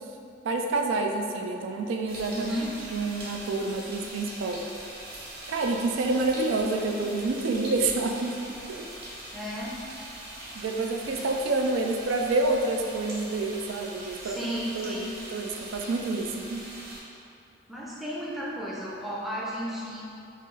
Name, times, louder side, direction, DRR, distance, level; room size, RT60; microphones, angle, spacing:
voice 1, 0.4-2.5 2.9-4.6 5.5-8.4 8.7-8.9 10.5-16.6, right 3 dB, 90° right, 2 dB, 0.3 m, -28 dB
sound 1, 2.1-17.0, right 1 dB, 55° right, 0.7 m, -42 dB
voice 2, 2.3-2.7 9.3-9.8 14.2-15.1 17.7-20.0, equal, ahead, -7 dB, 0.5 m, -34 dB
4.5 x 2.3 x 3.1 m, 2.6 s
head